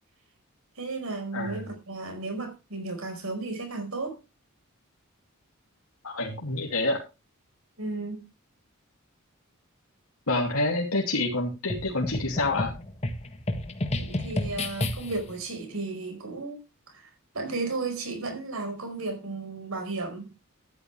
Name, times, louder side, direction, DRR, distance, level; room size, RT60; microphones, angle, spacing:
voice 1, 0.7-4.2 7.8-8.3 14.0-16.6 16.9-20.3, right 3 dB, 75° right, 4.9 m, -34 dB
voice 2, 1.3-1.7 6.0-7.0 10.3-12.7, left 2 dB, 90° left, 2.8 m, -27 dB
sound 1, 11.7-15.3, left 1 dB, 30° left, 1.6 m, -31 dB
13.0 x 11.0 x 3.4 m
head